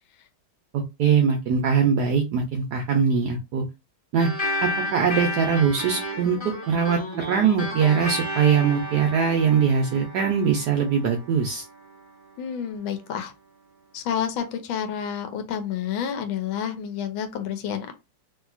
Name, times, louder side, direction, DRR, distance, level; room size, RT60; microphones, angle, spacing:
voice 1, 0.7-3.6 4.1-4.3 4.6-6.4 6.7-7.0 7.2-11.6, right 6 dB, 75° right, 1.0 m, -22 dB
sound 1, 4.2-13.0, equal, 15° left, 1.1 m, -33 dB
voice 2, 12.4-13.3 13.9-17.9, left 8 dB, 90° left, 1.5 m, -29 dB
3.1 x 2.8 x 2.4 m
omnidirectional pair, 2.2 m